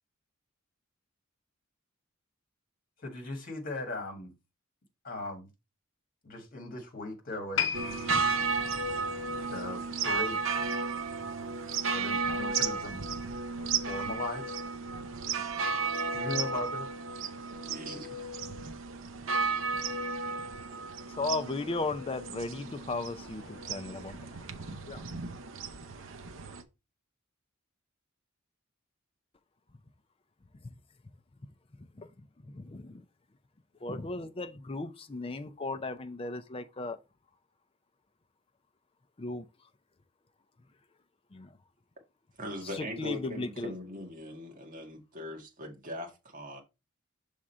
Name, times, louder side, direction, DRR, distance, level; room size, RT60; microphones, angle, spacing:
voice 1, 3.0-4.3 5.0-5.5 6.2-7.8 9.5-10.9 11.9-13.1 13.6-14.6 16.0-16.9, left 2 dB, 45° left, 1.6 m, -38 dB
sound 1, 7.6-10.9 11.2-11.4 12.1-12.2, left 8 dB, 70° left, 0.7 m, -37 dB
sound 2, 7.7-26.6, right 4 dB, 70° right, 0.8 m, -34 dB
voice 2, 17.5-18.2 42.4-46.6, equal, 40° right, 1.7 m, -41 dB
voice 3, 21.1-25.0 30.6-30.7 31.8-32.1 32.5-33.0 33.8-37.0 39.2-39.5 41.3-41.5 42.7-43.8, left 3 dB, 25° left, 0.5 m, -36 dB
6.4 x 3.6 x 4.2 m
head